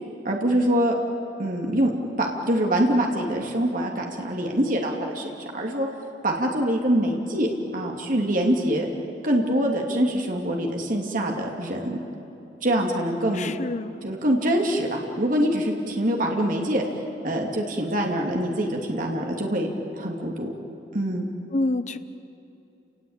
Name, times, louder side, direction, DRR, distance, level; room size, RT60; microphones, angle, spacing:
voice 1, 0.2-0.9 1.4-1.9 2.2-5.9 6.2-8.9 9.2-12.0 12.6-13.5 14.0-16.8 17.2-20.5 20.9-21.3, right 1 dB, 50° right, 1 dB, 2.8 m, -24 dB
voice 2, 13.3-13.9 21.5-22.0, left 2 dB, 40° left, 11 dB, 0.8 m, -27 dB
29.5 x 19.0 x 8.9 m, 2.7 s
head